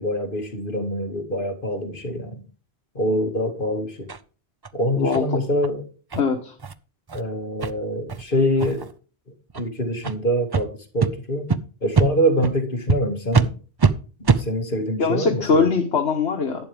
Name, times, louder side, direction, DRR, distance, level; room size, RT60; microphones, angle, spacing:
voice 1, 0.0-2.3 3.0-4.1 4.7-5.8 7.1-8.9 9.5-11.5 11.8-13.5 14.4-15.7, equal, 55° left, 3 dB, 2.4 m, -24 dB
sound 1, 4.1-4.2 4.6-4.7 5.1-5.2 5.6-5.7 6.1-6.2 6.6-6.7 7.1-7.2 7.6-7.7 8.1-8.2 8.6-8.9 9.5-9.6 10.0-10.2 10.5-10.6 11.0-11.1 11.5-11.6 11.9-12.1 12.4-12.5 12.9-13.0 13.3-13.5 13.8-13.9 14.2-14.4, right 5 dB, 35° right, 0.4 m, -21 dB
voice 2, 5.0-5.4 6.1-6.5 15.0-16.6, left 5 dB, 85° left, 3 dB, 1.6 m, -21 dB
11.5 x 9.2 x 3.5 m, 0.37 s
omnidirectional pair, 1.1 m